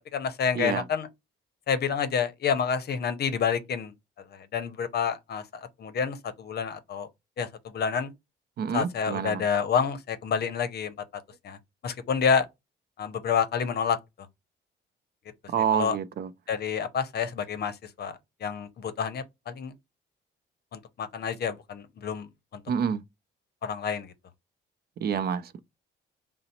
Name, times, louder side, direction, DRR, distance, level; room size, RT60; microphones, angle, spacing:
voice 1, 0.1-1.1 1.7-3.9 4.3-7.1 7.4-8.1 8.7-10.9 11.4-11.6 11.8-12.5 13.0-14.0 15.7-16.0 16.5-19.7 20.7-22.3 22.5-22.6 23.6-24.1, left 6 dB, 55° left, 0.7 m, -28 dB
voice 2, 8.6-9.4 15.5-16.3 22.7-23.0 25.0-25.6, right 8 dB, 50° right, 0.4 m, -28 dB
3.8 x 2.0 x 4.2 m
cardioid pair, 90°, 20 cm